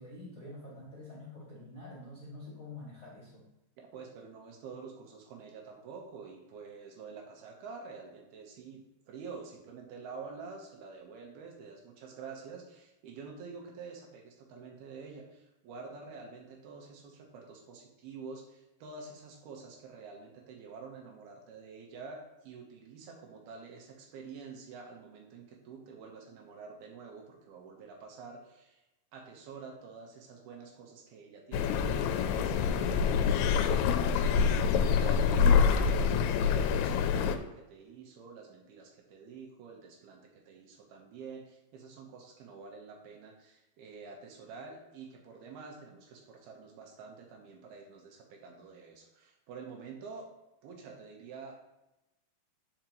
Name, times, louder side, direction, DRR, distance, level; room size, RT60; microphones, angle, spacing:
voice 1, 0.0-3.5, left 2 dB, 25° left, -6 dB, 1.5 m, -47 dB
voice 2, 3.9-28.8 29.1-50.3 50.6-51.6, right 5 dB, 75° right, 0 dB, 3.0 m, -48 dB
sound 1, 31.5-37.4, left 6 dB, 85° left, 2.5 m, -26 dB
10.5 x 5.2 x 3.1 m, 0.91 s
omnidirectional pair, 4.7 m